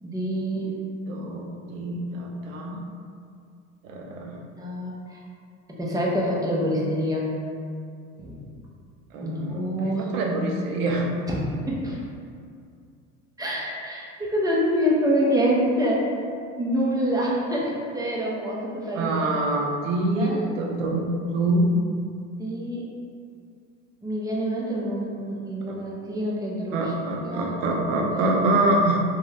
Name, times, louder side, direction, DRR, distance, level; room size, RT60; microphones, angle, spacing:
voice 1, 0.0-0.7 4.6-5.2 5.7-7.3 8.2-8.4 9.2-10.1 11.3-11.4 11.7-12.0 13.4-16.1 16.6-19.1 20.2-20.5 22.4-22.8 24.0-26.8 27.2-27.5 28.1-28.3, equal, 10° right, -4 dB, 0.6 m, -26 dB
voice 2, 1.1-2.8 3.8-4.4 9.1-11.1 18.9-21.0 21.3-21.7 25.7-25.8 26.7-29.0, right 2 dB, 80° right, 0 dB, 0.6 m, -25 dB
2.6 x 2.3 x 3.1 m, 2.3 s
hypercardioid pair, 80°, 39 cm